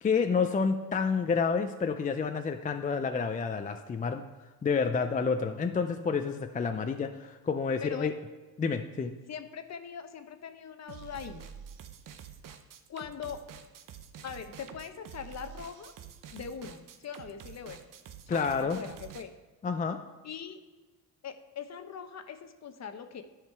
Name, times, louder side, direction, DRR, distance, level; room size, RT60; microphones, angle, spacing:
voice 1, 0.0-4.2 4.6-8.1 8.6-9.1 18.3-18.8 19.6-20.0, left 5 dB, 20° left, 7 dB, 0.4 m, -29 dB
voice 2, 7.8-8.1 9.3-11.5 12.9-13.4 14.2-15.9 16.3-17.9 18.3-19.3 20.2-20.6 21.2-23.2, left 7 dB, 45° left, 9 dB, 0.8 m, -41 dB
sound 1, 10.9-19.2, right 8 dB, 55° right, 0.8 m, -48 dB
11.0 x 5.0 x 4.6 m, 1.2 s
cardioid pair, 90°, 38 cm